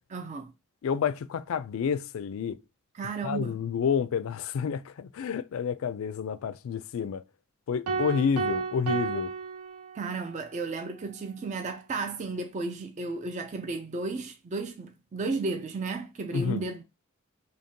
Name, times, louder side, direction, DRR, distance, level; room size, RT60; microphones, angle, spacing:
voice 1, 0.1-0.5 2.9-3.6 9.9-16.8, right 3 dB, 30° right, 0.3 m, -33 dB
voice 2, 0.8-2.6 3.2-7.2 7.7-9.3 16.3-16.6, left 6 dB, 65° left, 0.3 m, -29 dB
sound 1, 7.9-10.3, right 5 dB, 85° right, 0.7 m, -32 dB
5.1 x 2.7 x 2.7 m
head